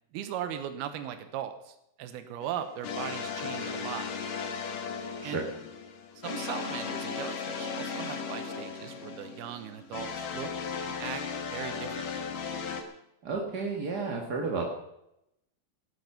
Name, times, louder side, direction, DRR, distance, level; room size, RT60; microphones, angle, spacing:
voice 1, 0.1-4.1 5.2-5.4 6.2-10.5 10.8-11.2 11.5-12.3, right 10 dB, 85° right, 8 dB, 3.0 m, -38 dB
sound 1, 2.4-12.8, left 6 dB, 65° left, 3.1 m, -36 dB
voice 2, 13.2-14.7, right 4 dB, 40° right, 0 dB, 1.6 m, -32 dB
17.5 x 11.5 x 5.9 m, 0.83 s
omnidirectional pair, 4.3 m